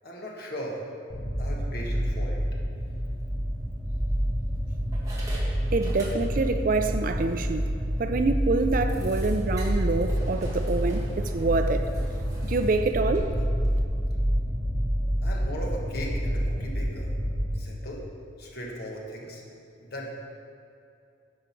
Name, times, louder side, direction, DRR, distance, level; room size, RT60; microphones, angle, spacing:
voice 1, 0.0-0.8 1.4-2.4 15.2-17.1 17.5-18.0 18.4-19.4 19.8-20.1, equal, 50° left, -2 dB, 1.5 m, -37 dB
sound 1, 1.1-17.5, equal, 5° left, 1.3 m, -28 dB
sound 2, 2.9-3.1 3.8-4.4 4.9-6.6 6.9-7.0 7.4-7.5 7.9-8.0 8.9-13.8, right 1 dB, 15° right, 1.5 m, -41 dB
voice 2, 5.7-7.7 8.0-11.1 11.3-11.9 12.4-13.3, right 3 dB, 45° right, 8 dB, 0.4 m, -26 dB
10.5 x 5.1 x 5.9 m, 2.6 s
head